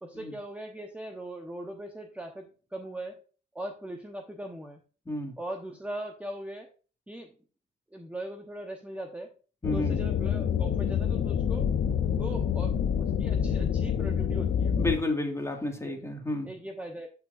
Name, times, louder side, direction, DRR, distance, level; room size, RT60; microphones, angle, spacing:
voice 1, 0.0-3.2 3.5-4.8 5.4-6.7 7.1-7.3 7.9-9.3 9.7-11.7 12.1-14.7 15.8-15.9 16.4-17.1, right 1 dB, 5° right, 2 dB, 1.1 m, -40 dB
voice 2, 5.1-5.4 9.6-10.0 14.8-16.5, left 1 dB, 15° left, 2 dB, 2.1 m, -31 dB
sound 1, 9.6-15.0, left 8 dB, 60° left, 0.9 m, -27 dB
12.5 x 4.5 x 2.6 m, 0.37 s
cardioid pair, 90°, 20 cm